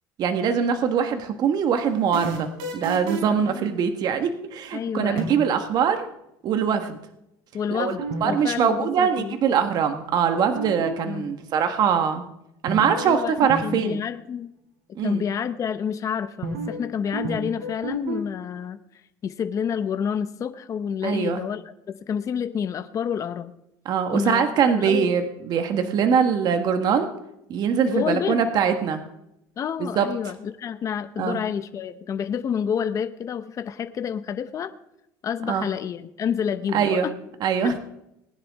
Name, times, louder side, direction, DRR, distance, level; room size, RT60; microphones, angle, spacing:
voice 1, 0.2-6.1 6.4-7.0 7.7-12.2 12.6-14.0 14.9-15.2 21.0-21.4 23.8-27.1 27.5-29.0 29.8-30.1 31.2-31.4 35.5-35.6 36.7-37.1 37.4-37.8, right 7 dB, 50° right, 7 dB, 1.6 m, -23 dB
sound 1, 1.8-3.4 5.2-5.6 8.0-8.2 8.5-8.6 10.3-11.1 12.7-13.1 13.4-13.6 13.9-14.0 16.4-16.8 17.1-18.2, right 3 dB, 75° right, 3.6 m, -30 dB
voice 2, 3.3-3.8 4.7-5.3 7.5-9.4 11.1-11.3 13.0-13.3 13.6-14.5 15.0-18.8 19.2-23.5 24.1-25.1 27.9-28.4 29.6-34.7 35.2-37.1 37.6-37.8, left 7 dB, 40° left, 9 dB, 0.9 m, -29 dB
20.0 x 10.5 x 3.7 m, 0.80 s
supercardioid pair, 115°, 9 cm